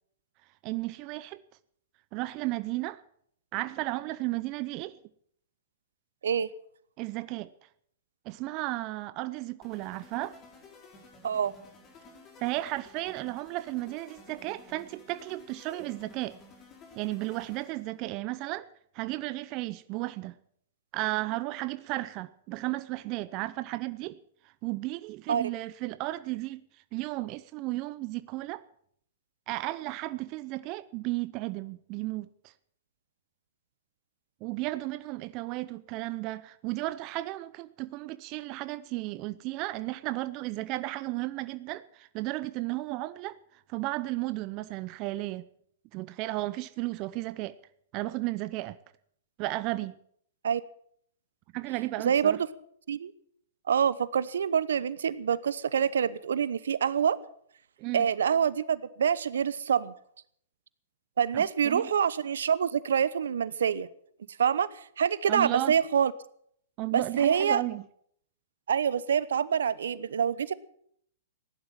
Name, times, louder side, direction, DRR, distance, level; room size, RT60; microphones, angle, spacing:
voice 1, 0.6-1.4 2.1-3.0 3.5-5.0 7.0-7.5 8.2-10.4 12.4-16.4 16.9-18.7 18.9-20.3 20.9-24.2 24.4-26.6 26.9-28.6 29.5-32.5 34.4-43.4 43.7-45.4 45.9-47.6 47.9-48.8 49.4-50.0 51.5-52.4 57.8-58.1 61.3-61.9 65.3-65.8 66.8-67.8, right 18 dB, 40° right, 0.6 m, -34 dB
sound 1, 9.6-18.0, left 3 dB, 25° left, 5.4 m, -54 dB
voice 2, 52.0-52.5 52.9-53.1 53.7-57.2 57.9-59.9 61.2-63.9 64.4-66.1 66.9-67.6 68.7-70.5, right 7 dB, 75° right, 0.8 m, -26 dB
16.0 x 11.5 x 7.4 m
hypercardioid pair, 120°, 0 cm